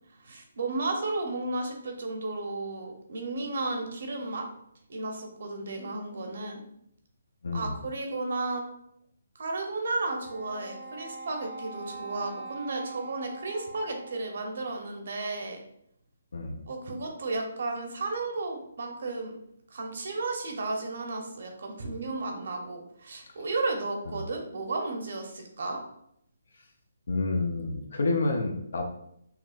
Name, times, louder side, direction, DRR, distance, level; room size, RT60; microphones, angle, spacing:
voice 1, 0.2-4.5 4.9-6.6 7.5-8.6 9.3-15.6 16.7-19.3 19.7-25.8, right 2 dB, 60° right, 2 dB, 1.0 m, -33 dB
voice 2, 7.4-7.7 16.3-16.6 24.1-24.2 27.1-28.8, left 3 dB, 70° left, 2 dB, 0.7 m, -29 dB
Wind instrument woodwind instrument, 10.0-14.6, right 3 dB, 25° right, 0.5 m, -43 dB
5.9 x 2.4 x 2.5 m, 0.73 s
hypercardioid pair, 165°, 0 cm